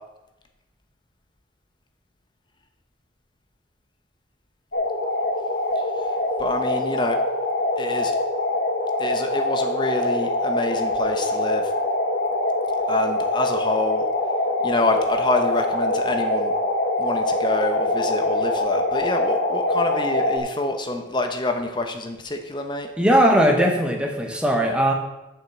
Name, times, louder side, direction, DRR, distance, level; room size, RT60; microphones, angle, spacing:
sound 1, 4.7-20.4, left 2 dB, 60° left, 1.3 m, -24 dB
voice 1, 6.4-7.2 7.8-8.1 9.0-11.6 12.9-14.0 14.6-16.5 17.0-22.9, left 2 dB, 25° left, 5 dB, 0.9 m, -26 dB
voice 2, 23.0-24.9, equal, 5° right, 2 dB, 1.1 m, -19 dB
7.5 x 5.7 x 7.1 m, 1.0 s
head